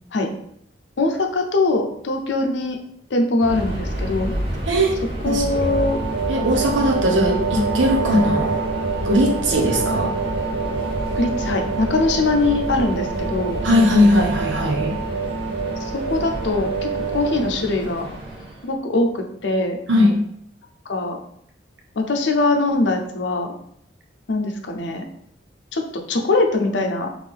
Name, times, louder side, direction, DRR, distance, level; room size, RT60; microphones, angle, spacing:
voice 1, 1.0-2.8 3.1-4.3 5.2-6.0 11.2-13.6 15.8-18.1 18.6-19.8 20.9-21.2 22.0-23.5 24.3-25.0 25.7-27.1, left 2 dB, 75° left, 4 dB, 0.6 m, -22 dB
Subway metro underground, 3.4-18.7, right 1 dB, 30° right, 0.9 m, -30 dB
sound 1, 5.5-17.7, right 4 dB, 70° right, 0.4 m, -27 dB
voice 2, 6.3-8.6 9.0-10.1 13.6-15.0 19.9-20.2, equal, 90° right, 2 dB, 0.9 m, -19 dB
3.4 x 3.2 x 3.6 m, 0.70 s
head